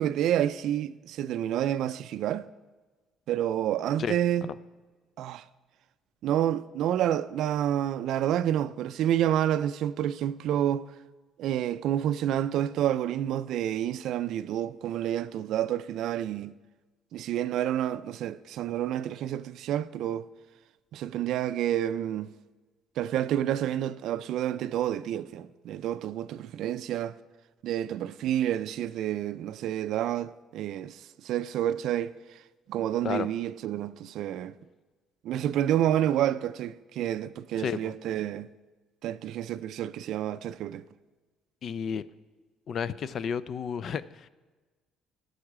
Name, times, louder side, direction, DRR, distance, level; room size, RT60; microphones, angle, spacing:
voice 1, 0.0-2.5 3.3-4.5 5.2-5.4 6.2-10.8 11.4-16.5 17.1-20.2 20.9-22.3 23.0-27.1 27.6-32.1 32.7-34.5 35.2-38.5 39.0-40.8, right 11 dB, 65° right, 0.4 m, -29 dB
voice 2, 37.6-37.9 41.6-42.0 42.7-44.3, left 7 dB, 40° left, 0.3 m, -32 dB
16.5 x 6.4 x 4.9 m
cardioid pair, 155°, 0 cm